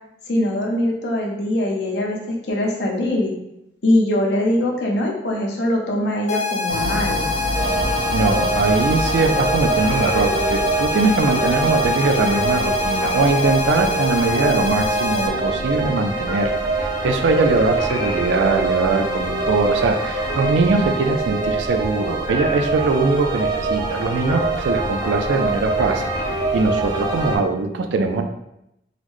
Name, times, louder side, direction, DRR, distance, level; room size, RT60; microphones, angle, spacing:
voice 1, 0.3-3.3 3.8-7.3, left 1 dB, 75° left, -1 dB, 0.7 m, -22 dB
sound 1, 6.3-15.3, left 4 dB, 40° left, 0.3 m, -25 dB
sound 2, 6.7-11.7, equal, 70° right, 0.8 m, -29 dB
sound 3, 7.5-27.4, right 3 dB, 20° right, 0.6 m, -24 dB
voice 2, 8.1-16.5 16.8-28.2, right 3 dB, 90° right, 6 dB, 0.4 m, -21 dB
3.9 x 2.0 x 3.1 m, 0.84 s
head